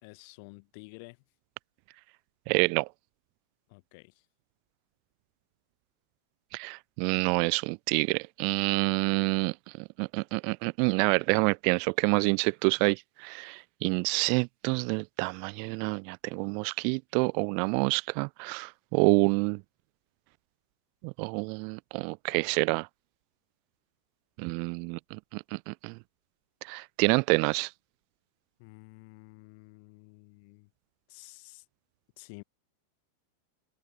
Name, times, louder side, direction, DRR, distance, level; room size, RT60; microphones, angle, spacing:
voice 1, 0.0-1.2 3.7-4.2 28.6-30.7 31.1-31.6 32.2-32.4, left 32 dB, 45° left, 4.9 m, -51 dB
voice 2, 2.5-2.9 6.5-9.5 10.0-19.6 21.0-22.9 24.4-26.0 26.6-27.7, right 40 dB or more, 45° right, 0.3 m, -28 dB
figure-of-eight pair, 90°, 0 cm